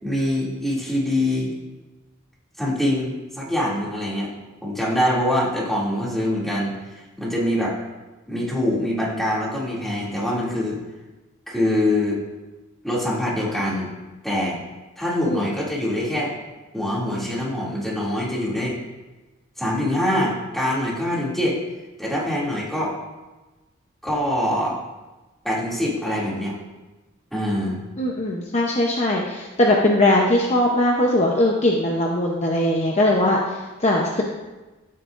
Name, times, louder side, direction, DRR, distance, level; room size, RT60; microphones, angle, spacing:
voice 1, 0.0-1.5 2.6-4.3 4.6-7.7 8.3-10.8 11.5-12.2 12.8-13.9 14.2-14.6 15.0-16.3 16.7-18.8 19.6-21.6 22.0-23.0 24.0-24.8 25.4-26.6 27.3-27.8, left 1 dB, ahead, -6 dB, 2.6 m, -24 dB
voice 2, 28.0-34.2, left 1 dB, 35° left, -1 dB, 0.9 m, -20 dB
15.0 x 8.5 x 2.6 m, 1.1 s
head